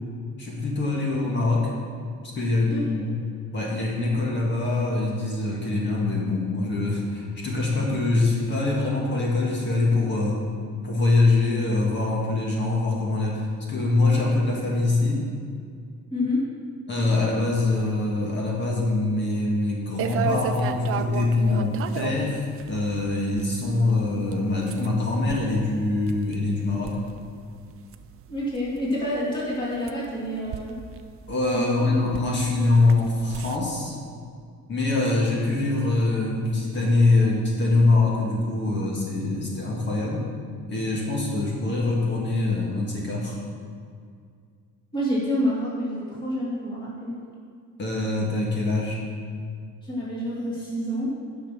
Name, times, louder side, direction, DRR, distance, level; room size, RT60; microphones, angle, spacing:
voice 1, 0.4-1.7 2.2-3.2 3.5-10.4 10.8-15.2 16.9-26.9 31.3-34.0 34.7-40.3 40.7-43.4 47.8-49.0, left 2 dB, 40° left, -3 dB, 1.7 m, -24 dB
voice 2, 2.7-3.1 16.1-16.5 28.3-30.7 31.5-31.7 44.9-47.2 49.8-51.1, left 1 dB, 15° left, -7 dB, 2.7 m, -28 dB
sound 1, 20.0-33.6, right 8 dB, 50° right, 0.5 m, -36 dB
10.5 x 6.1 x 6.2 m, 2.2 s
cardioid pair, 170°, 30 cm